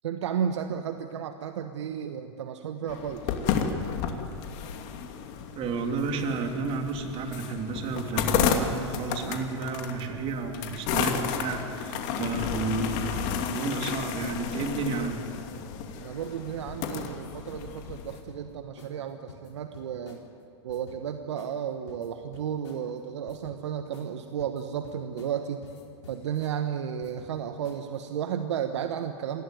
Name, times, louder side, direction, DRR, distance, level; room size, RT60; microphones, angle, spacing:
voice 1, 0.0-3.4 16.0-20.2 20.6-25.6 26.1-29.4, right 8 dB, 75° right, 7 dB, 1.3 m, -33 dB
sound 1, 2.9-18.2, left 7 dB, 50° left, 2.6 m, -32 dB
voice 2, 5.5-15.3, right 4 dB, 40° right, 4 dB, 3.4 m, -32 dB
sound 2, 14.1-15.1 15.5-15.8 16.2-16.4 16.7-17.6 18.1-18.4 18.8-19.0 19.3-20.2 20.7-21.0 21.4-21.6 21.9-22.8 23.3-23.6 23.9-24.1 24.4-25.4 25.6-26.6 27.0-27.4 27.6-28.0, left 4 dB, 75° left, 4.3 m, -49 dB
26.5 x 16.5 x 9.3 m, 2.8 s
hypercardioid pair, 105°, 15 cm